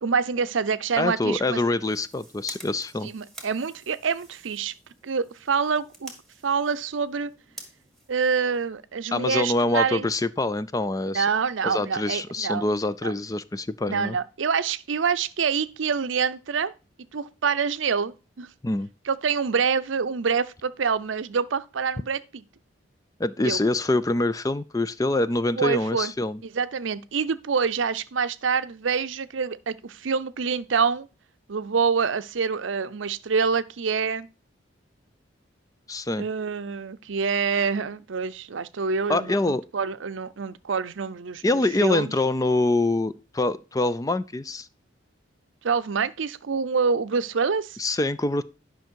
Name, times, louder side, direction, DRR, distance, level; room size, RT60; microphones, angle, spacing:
voice 1, 0.0-1.6 3.0-4.7 5.0-6.1 6.4-7.3 8.1-10.1 11.1-12.7 13.0-13.1 13.9-16.7 17.1-18.5 19.1-22.4 23.4-23.6 25.6-26.1 26.5-31.1 31.5-34.3 36.2-41.4 41.8-42.1 45.6-47.8, right 5 dB, 80° right, 0.6 m, -26 dB
voice 2, 1.0-3.1 9.1-11.3 11.6-14.2 18.6-18.9 23.2-26.4 35.9-36.3 39.1-39.6 41.4-44.7 47.8-48.4, left 2 dB, 20° left, 0.4 m, -25 dB
sound 1, 1.7-9.0, right 2 dB, ahead, 2.0 m, -48 dB
10.5 x 5.9 x 4.6 m
head